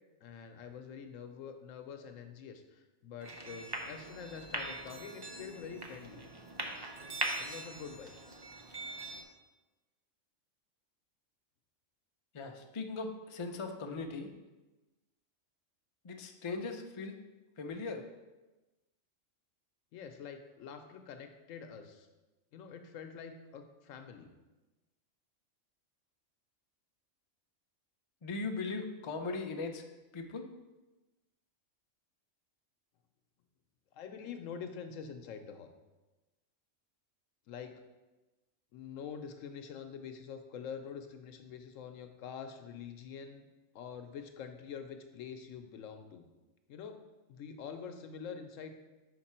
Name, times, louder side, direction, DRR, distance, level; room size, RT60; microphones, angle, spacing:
voice 1, 0.2-6.2 7.4-8.2 19.9-22.1 22.5-24.3 33.9-35.7 37.5-37.7 38.7-43.5 43.7-46.2 46.7-47.0 47.3-48.7, left 6 dB, 85° left, 7 dB, 1.0 m, -46 dB
sound 1, 3.2-9.2, right 2 dB, 30° right, 0.4 m, -41 dB
voice 2, 12.3-14.3 16.0-17.1 17.6-18.0 28.2-29.8 30.1-30.4, left 3 dB, 50° left, 4 dB, 0.3 m, -39 dB
5.9 x 4.6 x 4.3 m, 1.1 s
omnidirectional pair, 1.3 m